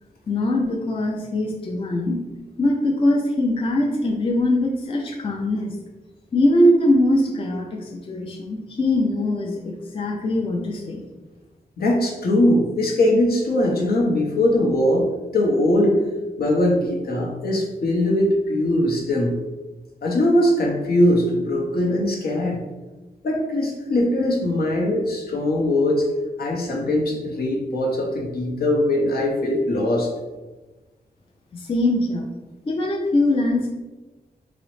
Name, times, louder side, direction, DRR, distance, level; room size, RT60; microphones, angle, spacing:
voice 1, 0.3-2.2 2.6-5.7 6.3-11.0 31.5-32.3 32.7-33.7, left 1 dB, 35° left, -1 dB, 0.4 m, -22 dB
voice 2, 11.8-16.0 16.4-19.3 20.0-22.6 23.2-26.1 26.4-30.1, left 1 dB, 70° left, -1 dB, 0.7 m, -21 dB
3.8 x 2.0 x 3.1 m, 1.2 s
wide cardioid pair, 150°, 16 cm